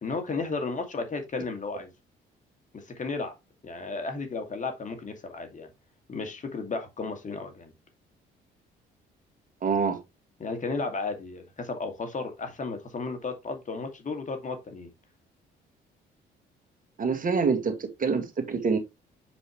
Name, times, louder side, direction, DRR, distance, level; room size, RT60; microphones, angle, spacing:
voice 1, 0.0-1.9 2.7-3.3 3.6-5.7 6.1-7.7 10.4-14.9, left 4 dB, 40° left, 2.4 m, -34 dB
voice 2, 9.6-10.0 17.0-18.8, right 5 dB, 45° right, 2.1 m, -26 dB
7.1 x 5.1 x 3.2 m
supercardioid pair, 70°, 19 cm